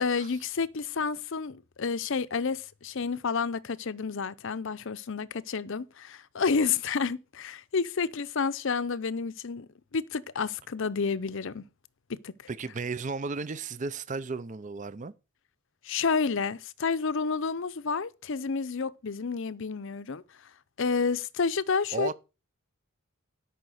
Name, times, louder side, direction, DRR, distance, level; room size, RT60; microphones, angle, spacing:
voice 1, 0.0-11.6 12.1-12.3 15.8-20.2 20.8-22.1, left 5 dB, 55° left, 0.6 m, -30 dB
voice 2, 12.5-15.1 21.9-22.1, right 4 dB, 35° right, 0.5 m, -34 dB
12.5 x 5.7 x 6.3 m
head